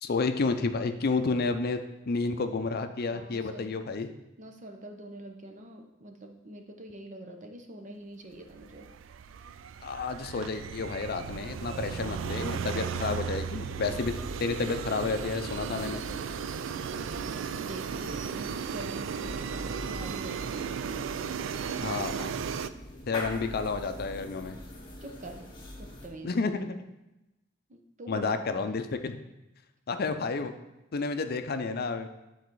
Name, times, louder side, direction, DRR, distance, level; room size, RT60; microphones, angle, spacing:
voice 1, 0.0-4.1 9.8-14.1 14.4-16.0 21.8-22.4 23.1-24.6 26.2-26.8 28.1-29.2 29.9-30.5 30.9-32.1, left 4 dB, 55° left, 8 dB, 0.5 m, -30 dB
voice 2, 3.1-3.8 4.1-8.9 17.0-20.7 25.0-25.5 25.8-26.3 27.7-28.8, right 1 dB, 40° right, 4 dB, 0.8 m, -45 dB
sound 1, 8.5-22.7, right 7 dB, 75° right, 0.3 m, -35 dB
sound 2, 12.8-26.1, left 1 dB, 25° left, 1.2 m, -44 dB
9.0 x 4.0 x 4.7 m, 0.96 s
head